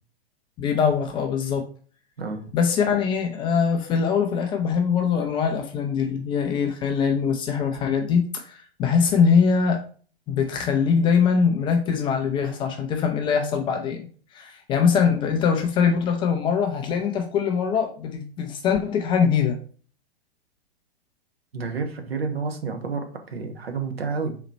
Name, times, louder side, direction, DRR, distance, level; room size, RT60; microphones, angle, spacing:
voice 1, 0.6-1.6 2.5-9.8 10.3-14.1 14.3-19.6, left 6 dB, 15° left, 4 dB, 0.4 m, -22 dB
voice 2, 21.5-24.4, right 4 dB, 70° right, 5 dB, 1.2 m, -30 dB
4.1 x 2.9 x 4.2 m, 0.42 s
figure-of-eight pair, 105°, 32 cm